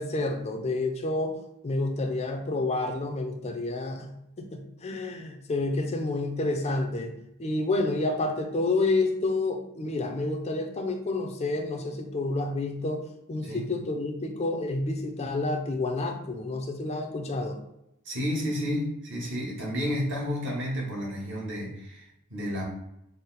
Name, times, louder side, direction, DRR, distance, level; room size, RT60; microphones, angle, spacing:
voice 1, 0.0-1.3 1.6-4.1 4.4-7.1 7.4-13.0 13.3-17.6, left 2 dB, 30° left, 4 dB, 0.4 m, -29 dB
voice 2, 18.0-22.7, equal, 55° right, -3 dB, 1.1 m, -31 dB
4.0 x 2.1 x 3.9 m, 0.83 s
head